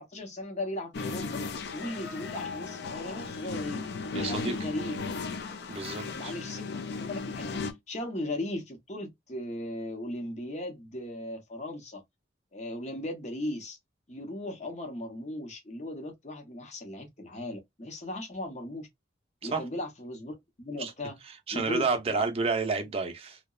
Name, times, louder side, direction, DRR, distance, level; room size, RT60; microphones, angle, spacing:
voice 1, 0.0-1.4 1.7-3.8 4.2-5.0 6.1-12.0 12.5-13.8 14.1-18.9 19.4-21.2 21.5-22.3, left 1 dB, 35° left, 0.7 m, -37 dB
sound 1, 0.9-7.7, left 4 dB, 60° left, 0.4 m, -36 dB
voice 2, 4.1-4.5 5.7-6.3 19.5-19.6 20.8-20.9 21.5-23.4, right 4 dB, 30° right, 0.5 m, -30 dB
2.7 x 2.1 x 2.2 m
head